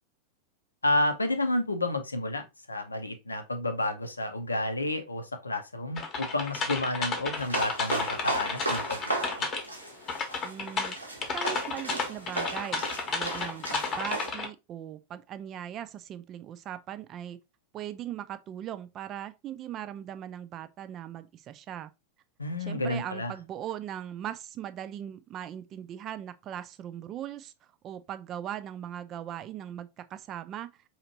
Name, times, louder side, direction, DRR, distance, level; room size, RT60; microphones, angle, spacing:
voice 1, 0.8-9.5 22.4-23.3, left 1 dB, 80° left, 0.6 m, -30 dB
sound 1, 6.0-9.8 10.1-14.5, left 4 dB, 30° left, 0.8 m, -32 dB
sound 2, 7.4-14.3, right 2 dB, 85° right, 0.9 m, -35 dB
voice 2, 10.4-17.4 17.7-21.9 22.6-27.5 27.8-30.7, right 10 dB, 30° right, 0.4 m, -39 dB
4.2 x 2.8 x 2.7 m
figure-of-eight pair, 90°, 0 cm